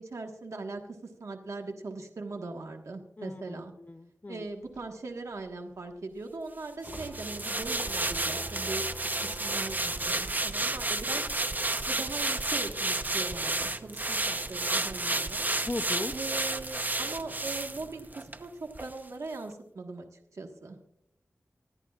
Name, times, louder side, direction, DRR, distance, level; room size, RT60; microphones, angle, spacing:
voice 1, 0.0-3.7 4.3-8.9 9.2-11.2 11.9-15.5 16.1-20.8, right 3 dB, 85° right, 3 dB, 1.4 m, -40 dB
voice 2, 3.2-4.4 15.7-16.1, left 2 dB, 30° left, 11 dB, 0.6 m, -37 dB
sound 1, 4.5-11.6 11.9-13.6, right 1 dB, 15° right, 5.3 m, -47 dB
sound 2, 6.8-18.4 18.7-18.9, right 2 dB, 35° right, 0.8 m, -31 dB
26.0 x 10.0 x 2.4 m, 0.76 s
cardioid pair, 45°, 5 cm